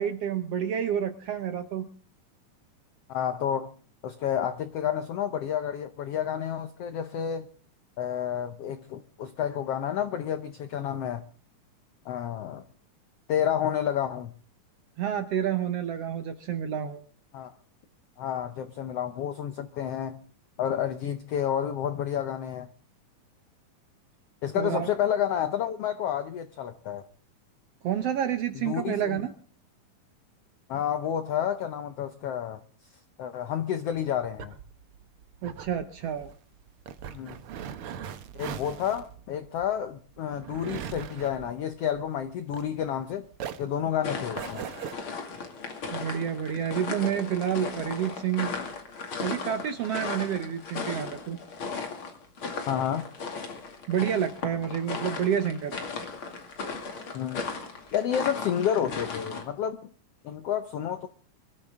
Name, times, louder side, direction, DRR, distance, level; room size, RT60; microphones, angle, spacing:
voice 1, 0.0-1.9 15.0-17.0 24.6-24.9 27.8-29.3 35.4-36.3 45.9-48.5 49.2-51.4 53.9-55.8, right 9 dB, 70° right, 1.5 m, -29 dB
voice 2, 3.1-3.7 4.0-7.5 8.0-11.2 12.0-12.6 13.3-14.3 17.3-17.5 18.2-20.2 20.6-22.7 24.4-27.0 28.5-29.2 30.7-32.6 33.2-34.5 37.1-37.4 38.4-43.3 43.6-44.6 52.7-53.1 57.1-57.4 57.9-59.8 60.2-61.1, left 9 dB, 90° left, 1.3 m, -30 dB
sound 1, 34.0-43.0 43.3-44.9, right 8 dB, 85° right, 1.2 m, -40 dB
sound 2, 44.0-59.4, left 4 dB, 40° left, 2.9 m, -36 dB
23.5 x 13.0 x 3.6 m
omnidirectional pair, 3.8 m